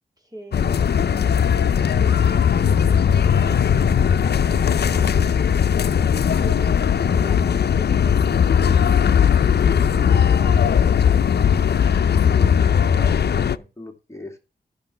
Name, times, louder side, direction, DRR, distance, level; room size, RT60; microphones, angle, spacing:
voice 1, 0.2-0.8 1.1-4.6 4.9-5.5 6.3-10.7, right 1 dB, 25° right, 2 dB, 3.3 m, -42 dB
sound 1, 0.5-13.6, left 8 dB, 80° left, 0.6 m, -18 dB
sound 2, 3.0-5.7, left 8 dB, 40° left, 2.8 m, -31 dB
voice 2, 12.3-14.4, left 1 dB, 15° left, 2 dB, 2.5 m, -38 dB
13.5 x 6.7 x 6.0 m, 0.31 s
wide cardioid pair, 95°, 17 cm